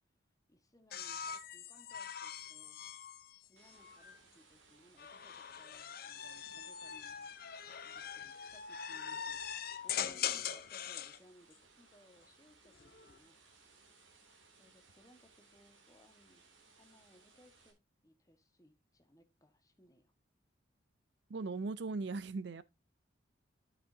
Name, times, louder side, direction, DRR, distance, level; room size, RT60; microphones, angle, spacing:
voice 1, 0.5-2.8 3.4-7.4 7.8-9.4 9.8-13.4 14.6-16.4 16.7-20.1, left 1 dB, 20° left, 1.3 m, -64 dB
sound 1, 0.9-4.2 5.0-11.2 12.7-13.2, left 8 dB, 50° left, 0.7 m, -42 dB
sound 2, 3.6-17.7, right 4 dB, 85° right, 2.5 m, -65 dB
voice 2, 21.3-22.6, right 3 dB, 60° right, 0.5 m, -38 dB
12.5 x 6.0 x 2.7 m
head